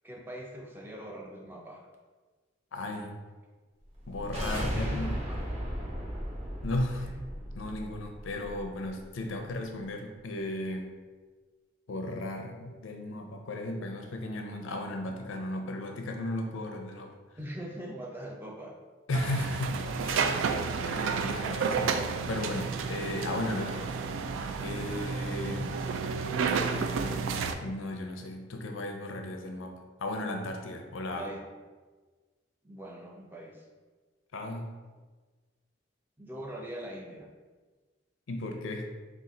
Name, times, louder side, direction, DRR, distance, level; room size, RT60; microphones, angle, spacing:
voice 1, 0.0-1.9 4.7-5.3 6.9-7.2 17.4-18.8 25.4-26.0 31.1-31.4 32.6-33.7 36.2-37.3, equal, 10° right, -1 dB, 0.4 m, -42 dB
voice 2, 2.7-3.2 4.1-5.2 6.6-7.1 7.6-10.9 11.9-17.1 19.1-20.5 20.8-23.8 24.6-25.6 26.7-31.3 34.3-34.7 38.3-38.9, left 1 dB, 90° left, 4 dB, 0.5 m, -35 dB
sound 1, 3.9-9.0, equal, 30° right, 0.8 m, -36 dB
sound 2, 19.1-27.5, right 5 dB, 85° right, 0.3 m, -31 dB
sound 3, 22.1-23.9, right 1 dB, 55° right, 1.4 m, -51 dB
4.2 x 2.4 x 3.7 m, 1.3 s
head